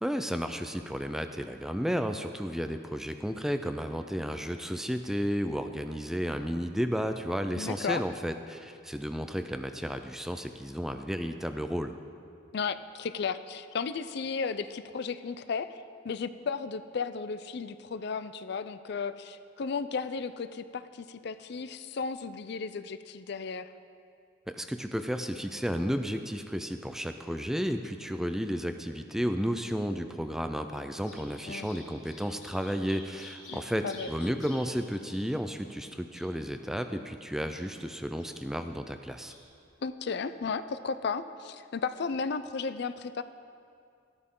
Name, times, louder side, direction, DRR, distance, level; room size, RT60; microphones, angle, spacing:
voice 1, 0.0-11.9 24.5-39.3, equal, ahead, 7 dB, 0.4 m, -33 dB
voice 2, 7.5-8.0 12.5-23.7 31.5-31.7 33.5-34.1 39.8-43.2, left 5 dB, 55° left, 12 dB, 0.4 m, -34 dB
Bird vocalization bird call bird song, 30.9-39.8, left 2 dB, 80° left, 2.7 m, -53 dB
13.0 x 12.5 x 3.8 m, 2.4 s
head